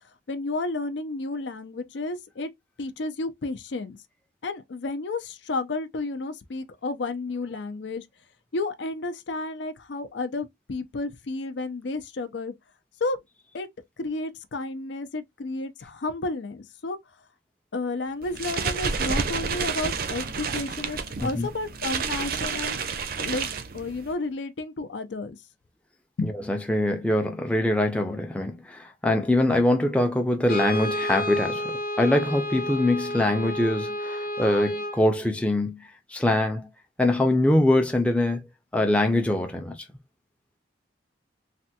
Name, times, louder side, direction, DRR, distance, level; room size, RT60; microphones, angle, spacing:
voice 1, 0.3-2.5 2.8-4.0 4.4-8.1 8.5-12.5 13.0-13.2 13.5-13.7 14.0-17.0 17.7-22.8 23.2-23.5 23.7-25.4 26.2-26.4, left 3 dB, 70° left, 0.5 m, -31 dB
sound 1, 18.2-24.1, right 5 dB, 50° right, 0.5 m, -30 dB
voice 2, 26.2-36.7 37.0-38.4 38.7-39.8, left 1 dB, 5° left, 0.4 m, -23 dB
Brass instrument, 30.4-35.0, equal, 50° left, 0.8 m, -30 dB
3.3 x 2.2 x 2.7 m
head